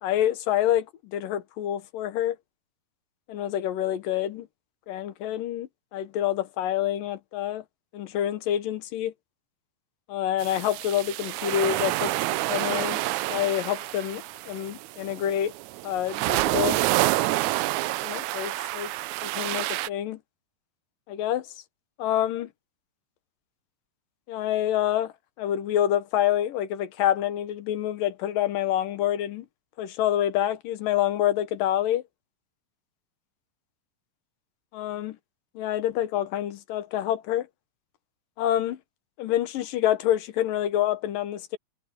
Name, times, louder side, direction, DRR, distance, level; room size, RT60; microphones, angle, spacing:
voice 1, 0.0-2.4 3.3-4.5 4.9-7.6 7.9-9.1 10.1-12.1 12.5-13.0 13.3-15.5 15.8-16.8 18.0-18.9 19.2-20.2 21.1-21.5 22.0-22.5 24.3-29.5 29.8-32.0 34.7-35.2 35.6-37.5 38.4-38.8 39.2-41.6, left 11 dB, 90° left, 2.9 m, -27 dB
sound 1, 10.4-19.9, right 18 dB, 80° right, 1.8 m, -28 dB
omnidirectional pair, 3.8 m